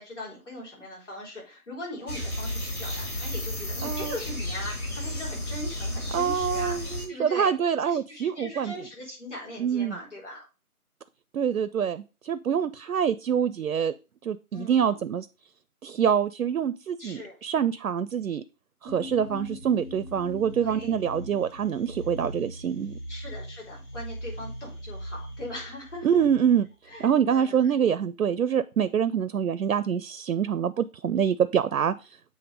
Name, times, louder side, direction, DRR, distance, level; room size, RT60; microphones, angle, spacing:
voice 1, 0.0-7.5 7.8-10.4 14.5-15.0 17.0-17.4 20.6-20.9 23.1-26.2 26.9-27.6, left 1 dB, 50° left, -3 dB, 3.9 m, -40 dB
sound 1, 2.1-7.1, left 1 dB, 70° left, 3.7 m, -32 dB
voice 2, 3.8-4.2 6.1-8.7 9.6-10.0 11.3-13.9 14.2-15.3 15.8-18.4 18.8-22.9 26.0-26.7 27.0-32.2, right 8 dB, 75° right, 14 dB, 0.5 m, -25 dB
sound 2, 18.9-27.4, equal, 90° left, 2.3 m, -40 dB
7.1 x 3.2 x 5.0 m, 0.31 s
figure-of-eight pair, 170°, 45 cm